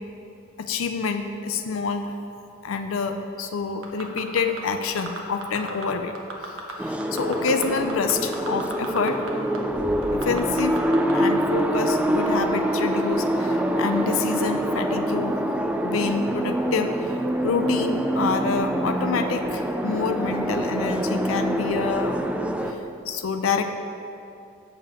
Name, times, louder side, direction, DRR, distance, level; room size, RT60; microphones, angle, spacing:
voice 1, 0.6-2.1 2.6-6.1 6.8-9.2 10.1-10.8 11.1-15.4 15.8-17.1 17.4-22.2 22.7-23.8, left 5 dB, 80° left, 7 dB, 0.5 m, -27 dB
sound 1, 3.8-4.6 5.0-5.8 6.1-6.7 7.0-9.3 9.5-9.6 10.0-11.1 11.6-11.7, right 3 dB, 80° right, 1.1 m, -35 dB
sound 2, 6.8-22.7, right 1 dB, 5° right, 0.3 m, -25 dB
6.9 x 5.5 x 7.3 m, 2.7 s
head